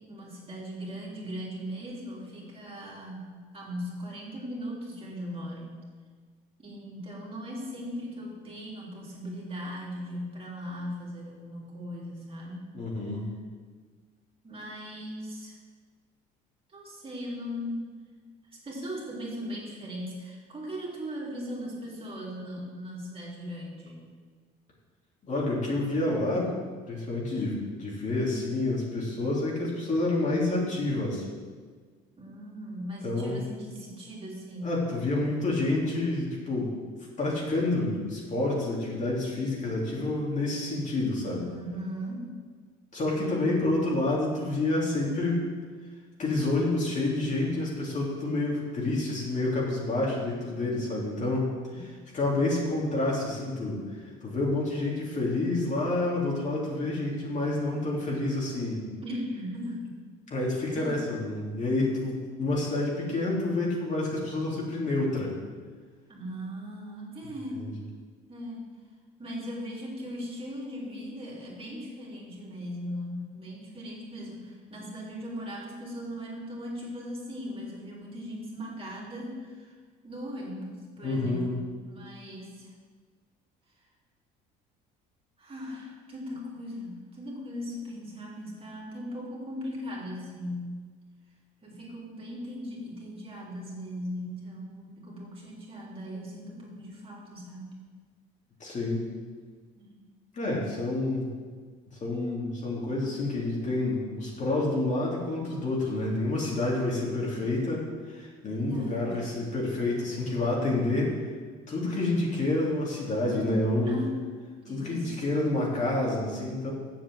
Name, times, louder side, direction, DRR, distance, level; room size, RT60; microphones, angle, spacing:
voice 1, 0.0-5.8 6.6-12.7 14.4-15.5 16.7-18.0 18.5-24.1 32.2-34.8 41.3-42.3 43.2-43.6 51.7-51.8 59.0-59.9 60.8-61.0 66.1-67.6 68.3-68.7 69.2-79.7 80.0-82.7 85.4-90.8 91.6-97.8 99.7-100.0 108.5-109.2 111.9-112.0 113.8-114.2 114.7-115.2, equal, 30° right, -4 dB, 3.2 m, -38 dB
voice 2, 12.7-13.3 25.2-26.5 26.9-31.2 33.0-33.4 34.6-36.8 37.2-41.5 42.9-45.5 46.2-51.5 52.1-53.8 54.2-58.8 60.3-65.3 67.5-67.7 81.0-81.5 98.6-99.0 100.3-101.3 102.0-111.2 111.7-114.0 114.7-116.7, left 2 dB, 40° left, -4 dB, 3.3 m, -28 dB
7.4 x 6.6 x 7.9 m, 1.6 s
supercardioid pair, 90°, 19 cm